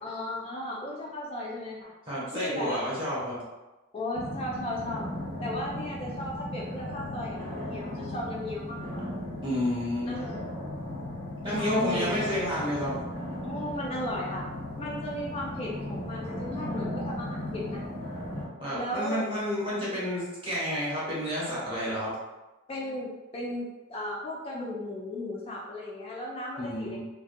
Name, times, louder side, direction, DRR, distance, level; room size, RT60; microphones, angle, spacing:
voice 1, 0.0-1.9 2.3-2.8 3.9-5.0 5.4-9.1 10.0-10.3 11.5-12.4 13.4-14.5 14.8-17.8 18.7-19.3 22.7-27.0, left 1 dB, 30° left, -4 dB, 0.3 m, -35 dB
voice 2, 2.1-3.4 9.4-10.1 11.4-13.0 18.6-22.1 26.6-27.0, equal, 25° right, -8 dB, 1.0 m, -30 dB
sound 1, 4.1-18.5, left 1 dB, 80° right, 1.1 m, -36 dB
2.4 x 2.2 x 2.5 m, 1.1 s
head